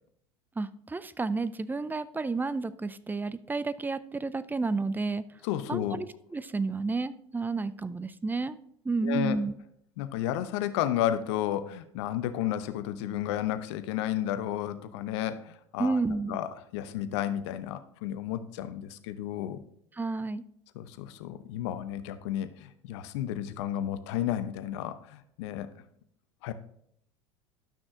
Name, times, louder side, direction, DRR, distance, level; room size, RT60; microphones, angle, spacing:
voice 1, 0.6-5.2 5.7-8.6 8.8-9.5 15.8-16.4 20.0-20.4, right 3 dB, 10° right, 15 dB, 0.5 m, -31 dB
voice 2, 5.4-6.0 9.0-9.4 10.0-16.0 16.3-19.6 20.7-25.7 26.4-26.5, left 11 dB, 65° left, 12 dB, 0.8 m, -32 dB
12.0 x 6.1 x 3.7 m, 0.69 s
hypercardioid pair, 75°, 16 cm